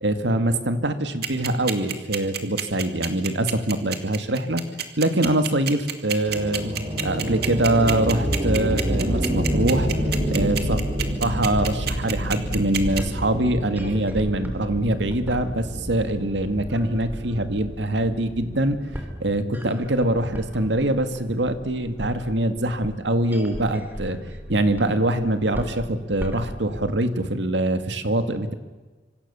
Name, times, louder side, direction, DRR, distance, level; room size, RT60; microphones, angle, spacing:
voice 1, 0.0-4.6 5.0-6.7 7.0-9.9 10.3-10.8 11.2-18.8 19.2-24.2 24.5-28.5, right 1 dB, 80° right, 9 dB, 2.2 m, -23 dB
sound 1, 1.2-13.0, right 10 dB, 60° right, 2.4 m, -28 dB
sound 2, 6.3-19.3, equal, 40° right, 5.5 m, -28 dB
sound 3, 12.6-27.0, equal, 10° right, 3.7 m, -38 dB
26.0 x 25.5 x 7.0 m, 1.3 s
head